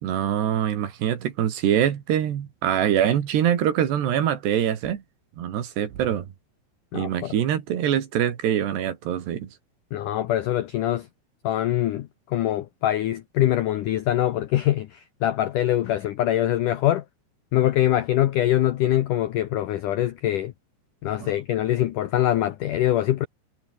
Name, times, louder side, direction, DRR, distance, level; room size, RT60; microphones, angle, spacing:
voice 1, 0.0-5.0 5.4-6.3 6.9-9.5 21.2-21.3, right 10 dB, 70° right, 4.4 m, -24 dB
voice 2, 6.9-7.3 9.9-11.1 11.4-17.0 17.5-20.5 21.0-23.3, left 13 dB, 80° left, 1.9 m, -23 dB
omnidirectional pair, 5.0 m